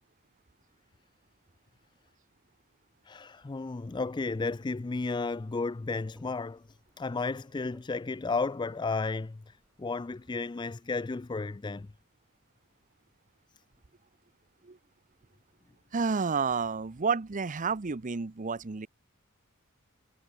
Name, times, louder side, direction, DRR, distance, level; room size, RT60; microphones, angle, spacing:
voice 1, 3.1-11.9, left 3 dB, 20° left, 0.4 m, -33 dB
sound 1, 4.7-9.8, equal, ahead, 3.8 m, -68 dB
voice 2, 15.9-18.9, right 5 dB, 35° right, 0.7 m, -30 dB
head